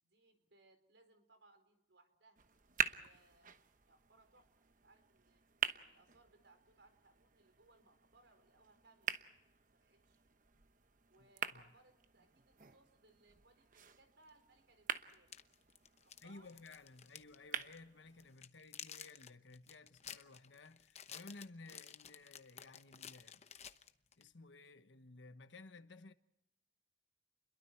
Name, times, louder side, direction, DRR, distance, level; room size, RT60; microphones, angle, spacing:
voice 1, 0.0-2.4 2.8-5.4 5.9-9.2 9.7-10.3 11.1-15.4 16.0-16.5, right 2 dB, 75° right, 4.3 m, -69 dB
sound 1, 2.4-18.4, right 7 dB, 45° right, 1.0 m, -46 dB
voice 2, 11.2-11.7 16.2-23.4 24.2-26.1, left 3 dB, 85° left, 1.2 m, -56 dB
sound 2, 15.1-17.4 17.6-17.8 18.2-24.3, left 8 dB, 35° left, 0.9 m, -53 dB
29.5 x 22.5 x 4.6 m
head